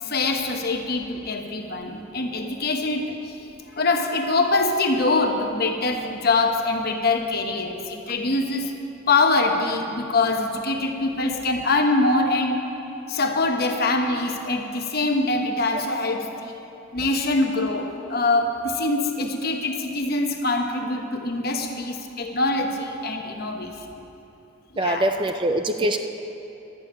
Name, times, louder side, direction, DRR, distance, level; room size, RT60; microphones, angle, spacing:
voice 1, 0.0-3.3 3.7-8.7 9.1-12.6 13.1-16.5 16.9-23.9 24.8-25.1, left 2 dB, 50° left, 4 dB, 1.0 m, -24 dB
voice 2, 24.8-26.0, right 1 dB, 25° right, 6 dB, 0.4 m, -23 dB
11.5 x 7.1 x 8.6 m, 2.9 s
head